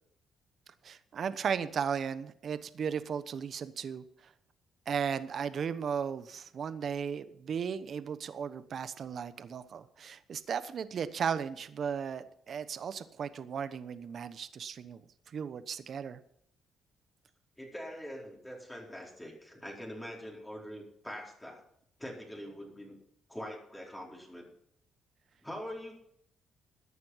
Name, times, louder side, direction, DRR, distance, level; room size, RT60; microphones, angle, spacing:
voice 1, 0.8-4.0 4.9-15.0 15.3-16.2, right 7 dB, 55° right, 13 dB, 1.0 m, -35 dB
voice 2, 17.6-21.6 22.0-22.9 23.3-24.5 25.4-25.9, equal, 10° left, -2 dB, 4.5 m, -43 dB
14.5 x 9.6 x 5.7 m, 0.69 s
cardioid pair, 90°, 0 cm